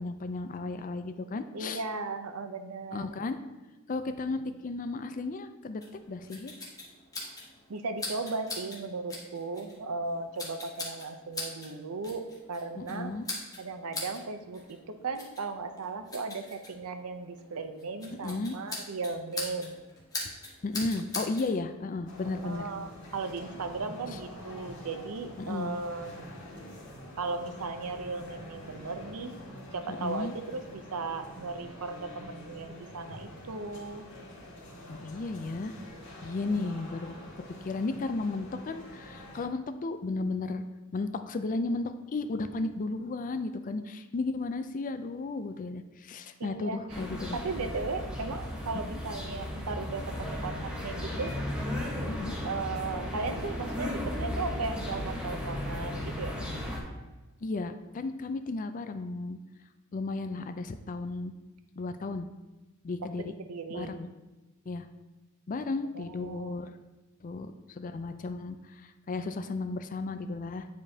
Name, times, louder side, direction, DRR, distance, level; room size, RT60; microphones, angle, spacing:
voice 1, 0.0-1.8 2.9-3.4 3.9-5.8 6.1-6.5 12.8-13.3 18.2-18.6 20.6-22.7 25.4-25.7 29.9-30.3 34.9-35.7 36.2-37.1 37.6-40.6 40.9-47.4 52.1-52.4 57.4-59.4 59.9-61.3 61.8-62.3 62.8-63.3 63.7-64.1 64.7-64.9 65.5-66.7 67.2-68.6 68.8-70.7, left 3 dB, 35° left, 9 dB, 0.4 m, -34 dB
voice 2, 1.5-3.1 4.0-4.6 7.2-7.3 7.7-13.1 13.6-19.8 22.4-26.3 27.2-29.4 29.7-34.1 36.4-36.6 46.4-47.0 47.3-51.4 52.4-56.3 63.2-63.9 65.9-66.6, right 3 dB, 85° right, 7 dB, 0.6 m, -36 dB
sound 1, 5.8-21.5, left 2 dB, 15° left, 1.3 m, -42 dB
sound 2, 22.1-39.4, left 1 dB, 60° left, 2.2 m, -46 dB
sound 3, 46.9-56.8, left 1 dB, 5° right, 1.2 m, -35 dB
9.4 x 5.1 x 2.8 m, 1.1 s
head